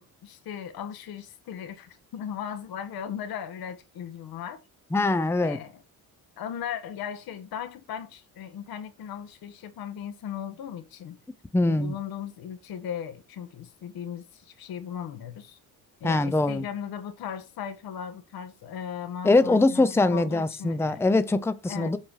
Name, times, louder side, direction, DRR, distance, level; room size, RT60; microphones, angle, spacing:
voice 1, 0.0-4.6 5.4-5.7 6.4-11.2 11.6-15.6 16.0-21.1 21.7-21.9, left 8 dB, 75° left, 1.6 m, -37 dB
voice 2, 4.9-5.6 11.5-11.9 16.0-16.6 19.2-22.0, left 2 dB, 5° left, 0.7 m, -23 dB
7.9 x 4.4 x 5.8 m
cardioid pair, 105°, 36 cm